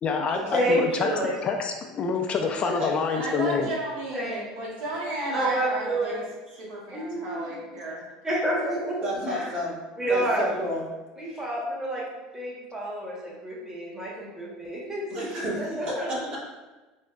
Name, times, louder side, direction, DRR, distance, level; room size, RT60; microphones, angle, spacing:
voice 1, 0.0-1.1 1.4-3.7, left 5 dB, 35° left, 3 dB, 0.3 m, -27 dB
voice 2, 0.5-1.3 4.1-4.5 5.3-6.2 6.9-7.5 8.2-9.5 10.0-10.5 11.2-12.0 12.3-16.3, right 1 dB, 15° right, -4 dB, 1.1 m, -29 dB
voice 3, 3.1-6.2 6.6-8.0, right 2 dB, 60° right, -4 dB, 1.0 m, -33 dB
voice 4, 9.0-9.8 10.0-10.8 11.3-11.4 15.1-16.4, equal, 45° right, -5 dB, 1.4 m, -31 dB
4.4 x 2.1 x 2.3 m, 1.1 s
supercardioid pair, 95°, 3 cm